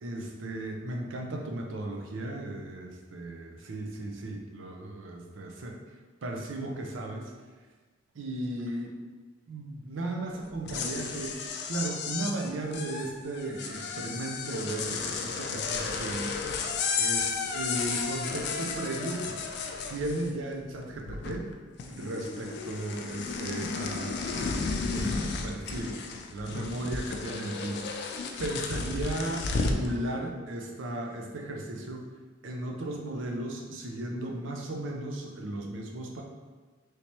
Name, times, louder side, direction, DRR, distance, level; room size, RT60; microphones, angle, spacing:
voice 1, 0.0-5.8 6.2-7.3 8.1-8.9 9.5-11.4 11.7-16.7 16.9-19.4 19.9-21.5 21.9-26.0 26.3-27.8 28.4-32.1 32.4-36.2, right 1 dB, 90° right, 1 dB, 0.5 m, -35 dB
sound 1, 10.5-20.5 20.8-21.5 21.8-29.9, left 4 dB, 60° left, 0.3 m, -33 dB
3.2 x 3.1 x 2.8 m, 1.4 s
head